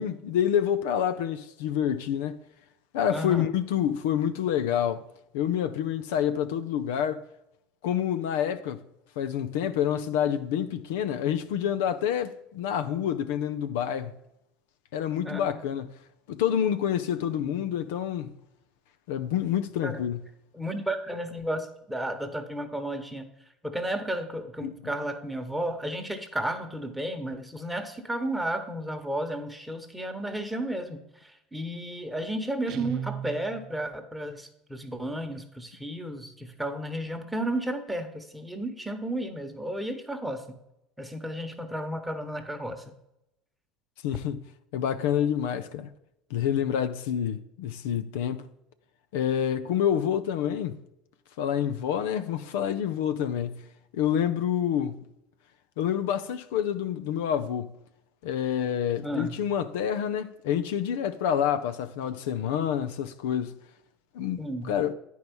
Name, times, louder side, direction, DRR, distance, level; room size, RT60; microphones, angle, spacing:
voice 1, 0.0-2.4 2.9-5.0 5.3-7.2 7.8-8.8 9.2-14.1 14.9-15.9 16.3-18.3 19.1-20.2 24.6-24.7 44.0-44.4 44.7-45.9 46.3-48.5 49.1-50.8 51.4-53.6 53.9-55.0 55.8-57.7 58.2-63.6 64.1-64.9, left 9 dB, 85° left, 0.5 m, -28 dB
voice 2, 3.1-3.4 15.2-15.6 19.7-20.0 20.5-23.3 23.6-40.6 41.0-42.9 59.0-59.4 64.4-64.7, right 1 dB, 5° right, 1.2 m, -33 dB
Guitar, 32.7-33.9, right 9 dB, 55° right, 0.4 m, -37 dB
9.5 x 4.6 x 5.3 m
supercardioid pair, 105°, 0 cm